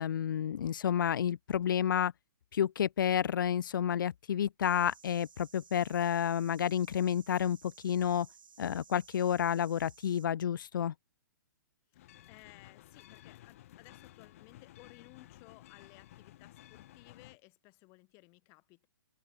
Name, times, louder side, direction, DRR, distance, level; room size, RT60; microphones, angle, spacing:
voice 1, 0.0-2.1 2.5-7.6 7.8-8.3 8.6-10.9, left 9 dB, 80° left, 0.4 m, -30 dB
sound 1, 4.6-10.3, right 7 dB, 85° right, 2.4 m, -58 dB
sound 2, 11.9-17.4, left 14 dB, 45° left, 1.6 m, -55 dB
voice 2, 11.9-18.9, left 27 dB, 25° left, 5.1 m, -59 dB
hypercardioid pair, 160°, 11 cm